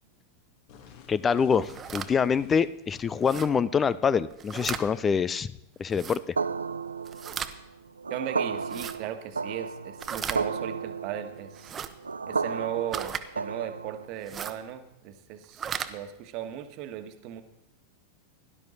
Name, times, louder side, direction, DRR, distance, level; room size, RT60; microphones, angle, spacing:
sound 1, 0.7-3.3, left 7 dB, 45° left, 2.2 m, -52 dB
voice 1, 1.1-5.5 5.8-6.4, left 6 dB, 20° left, 18 dB, 0.4 m, -25 dB
sound 2, 1.5-2.1 3.2-3.5 4.3-4.8 5.9-6.2 7.0-7.5 8.6-9.0 10.0-10.4 11.5-11.9 12.9-13.2 14.2-14.6 15.4-15.9, right 8 dB, 25° right, 1.0 m, -35 dB
sound 3, 6.4-14.2, right 5 dB, 75° right, 0.5 m, -33 dB
voice 2, 8.1-11.8 12.3-17.4, right 11 dB, 40° right, 9 dB, 1.4 m, -37 dB
17.0 x 12.0 x 4.1 m, 0.83 s
figure-of-eight pair, 90°, 0 cm